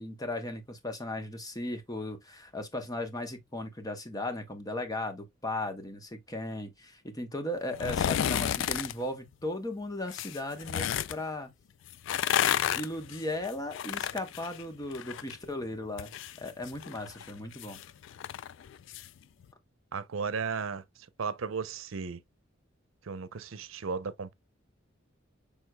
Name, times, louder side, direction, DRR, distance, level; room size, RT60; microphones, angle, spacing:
voice 1, 0.0-11.5 12.7-16.1 16.4-17.8, left 1 dB, 20° left, 1.0 m, -36 dB
sound 1, 7.7-8.9 10.1-11.2 11.9-15.4 15.7-19.1 19.4-19.5, left 10 dB, 65° left, 0.3 m, -31 dB
voice 2, 19.9-20.8 21.2-22.2 23.0-24.3, right 5 dB, 85° right, 0.6 m, -35 dB
6.3 x 3.6 x 2.2 m
head